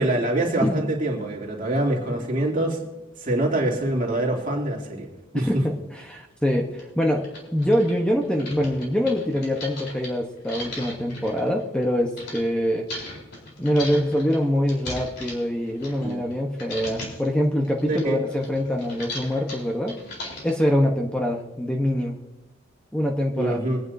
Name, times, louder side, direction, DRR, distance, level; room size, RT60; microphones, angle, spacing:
voice 1, 0.0-2.8 3.2-5.1 5.3-5.6 16.0-16.2 17.9-18.2 23.3-23.8, right 1 dB, 40° right, -2 dB, 2.8 m, -24 dB
voice 2, 5.3-6.7 6.9-7.2 7.5-12.9 13.6-19.9 20.4-22.2 22.9-23.6, equal, 5° left, 1 dB, 1.0 m, -24 dB
sound 1, 6.1-6.2 6.8-6.9 7.2-12.4 12.9-16.3 16.6-17.3 17.6-20.6, left 1 dB, 55° left, 3.9 m, -37 dB
23.0 x 9.6 x 2.7 m, 1.0 s
head